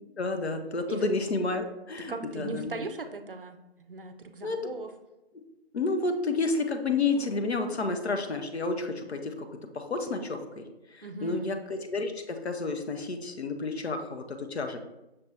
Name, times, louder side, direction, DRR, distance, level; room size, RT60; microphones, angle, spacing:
voice 1, 0.2-2.8 4.4-4.7 5.7-9.5 9.7-10.6 10.9-14.8, left 3 dB, 80° left, 6 dB, 0.7 m, -30 dB
voice 2, 2.1-3.6 3.9-4.9 11.0-11.5, right 3 dB, 55° right, 7 dB, 0.4 m, -38 dB
5.9 x 2.6 x 3.2 m, 0.99 s
figure-of-eight pair, 180°, 32 cm